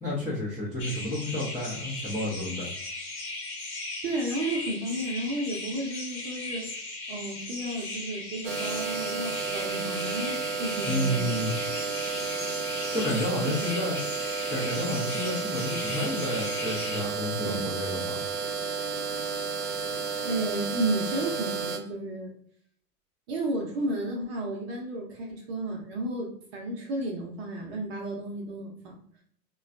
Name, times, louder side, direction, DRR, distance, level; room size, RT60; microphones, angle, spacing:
voice 1, 0.0-2.7 10.8-11.5 12.9-14.0 14.5-18.2, left 1 dB, 5° left, -11 dB, 0.6 m, -30 dB
sound 1, 0.8-17.0, left 2 dB, 25° left, 1.1 m, -37 dB
voice 2, 4.0-6.6 7.1-11.4 13.4-13.6 17.4-17.7 20.2-22.3 23.3-29.0, right 1 dB, 40° right, 0 dB, 0.7 m, -32 dB
sound 2, 8.4-21.8, right 5 dB, 80° right, 0.7 m, -32 dB
3.0 x 2.2 x 2.5 m, 0.64 s
hypercardioid pair, 105°, 49 cm